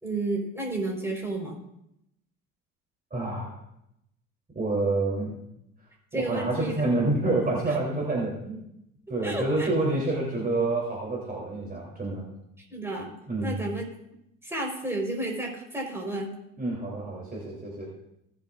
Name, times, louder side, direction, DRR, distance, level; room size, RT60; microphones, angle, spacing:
voice 1, 0.0-1.6 6.1-6.9 7.7-8.0 9.2-9.7 12.6-13.1 13.4-13.9 14.4-16.3, right 2 dB, 5° right, 0 dB, 4.1 m, -32 dB
voice 2, 3.1-3.6 4.5-5.4 6.1-8.6 9.1-12.3 13.3-13.6 16.6-17.8, right 2 dB, 20° right, -3 dB, 3.1 m, -28 dB
19.5 x 7.6 x 2.5 m, 0.80 s
hypercardioid pair, 65°, 40 cm